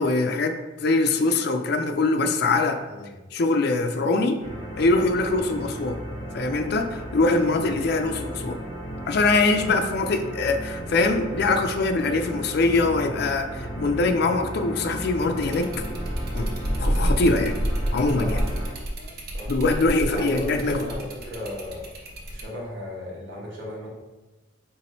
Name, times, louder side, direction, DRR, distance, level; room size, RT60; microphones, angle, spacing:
voice 1, 0.0-2.8 3.3-4.4 4.8-6.0 6.3-8.6 9.1-15.7 16.3-16.5 16.8-17.5 17.9-18.4 19.5-20.9, left 3 dB, 55° left, 6 dB, 0.4 m, -23 dB
sound 1, 4.4-18.7, right 1 dB, 30° left, 1.5 m, -35 dB
sound 2, 15.4-22.4, equal, 50° right, 0.6 m, -29 dB
voice 2, 20.1-21.8 22.3-23.9, left 1 dB, 70° right, -4 dB, 1.2 m, -35 dB
4.5 x 3.0 x 2.9 m, 1.2 s
head